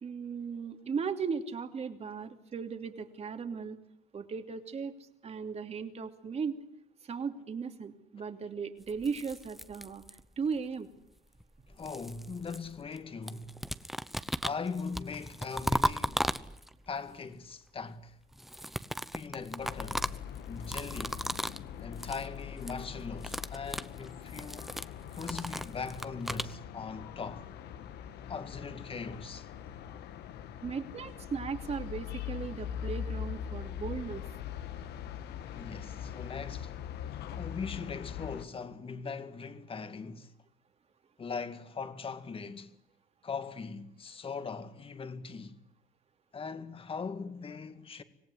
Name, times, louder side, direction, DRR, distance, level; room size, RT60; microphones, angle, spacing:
voice 1, 0.0-3.8 4.1-4.9 5.2-6.6 7.0-10.0 10.4-10.9 30.6-34.2, right 5 dB, 40° right, 2.9 m, -37 dB
sound 1, 8.9-10.5 11.4-13.0 13.3-16.9 18.3-21.7 21.9-22.3 22.5-22.8 23.1-26.5, equal, ahead, 1.0 m, -36 dB
voice 2, 11.7-13.6 14.4-16.3 16.9-18.2 19.1-20.1 20.4-21.2 21.8-24.7 25.1-27.5 28.3-29.5 35.5-36.7 37.4-40.3 41.2-42.7 43.2-45.6 46.3-48.0, left 5 dB, 30° left, 2.1 m, -40 dB
sound 2, 19.6-38.5, left 9 dB, 75° left, 1.8 m, -42 dB
25.5 x 18.5 x 9.7 m
cardioid pair, 110°, 17 cm